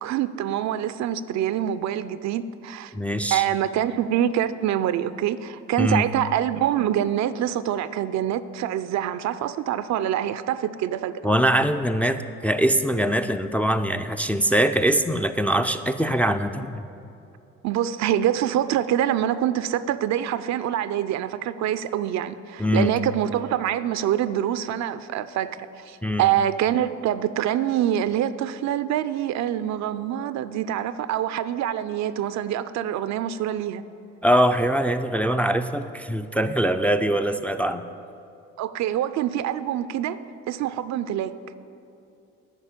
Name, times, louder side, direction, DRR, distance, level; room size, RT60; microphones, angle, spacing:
voice 1, 0.0-2.9 3.3-11.2 17.6-33.8 38.6-41.4, right 11 dB, 60° right, 13 dB, 0.5 m, -25 dB
voice 2, 2.9-3.4 5.8-6.0 11.2-16.8 22.6-22.9 26.0-26.3 34.2-37.8, equal, 5° left, 7 dB, 0.4 m, -22 dB
9.8 x 5.5 x 8.3 m, 2.8 s
supercardioid pair, 65°, 31 cm